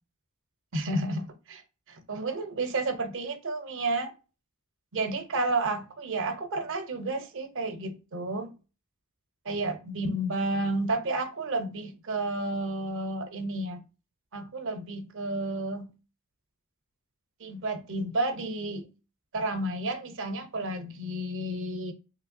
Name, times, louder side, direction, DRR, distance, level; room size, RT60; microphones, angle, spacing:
voice 1, 0.7-1.6 1.9-4.1 4.9-8.5 9.5-13.8 14.3-15.9 17.4-18.9 19.3-21.9, right 2 dB, 60° right, 0.6 m, -31 dB
3.1 x 3.1 x 2.6 m
head